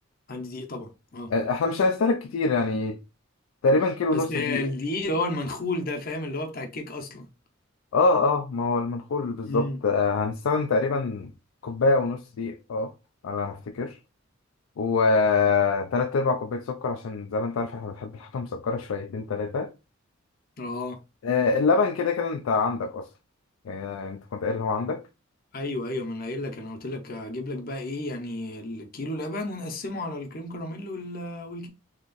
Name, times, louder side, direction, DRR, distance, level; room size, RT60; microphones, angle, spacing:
voice 1, 0.3-1.3 4.1-7.3 9.5-9.8 20.6-21.0 25.5-31.7, left 2 dB, 45° left, 0.7 m, -32 dB
voice 2, 1.3-3.0 3.6-4.6 7.9-11.3 11.6-12.9 13.2-14.0 14.8-19.7 21.2-23.1 23.7-25.0, left 4 dB, 75° left, 0.3 m, -25 dB
2.9 x 2.5 x 3.9 m
head